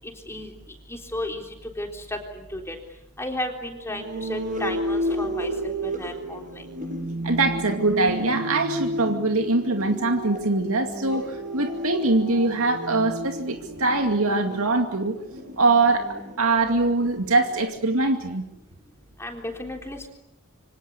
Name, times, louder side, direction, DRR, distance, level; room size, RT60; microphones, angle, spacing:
voice 1, 0.0-0.5 0.9-1.4 1.8-2.8 3.2-6.6 19.2-20.1, left 1 dB, 10° left, 2 dB, 3.7 m, -33 dB
sound 1, 3.9-17.6, equal, 35° right, 8.0 m, -32 dB
voice 2, 7.2-15.2 15.6-18.5, right 3 dB, 70° right, 5 dB, 2.3 m, -23 dB
27.5 x 25.0 x 8.3 m, 0.81 s
head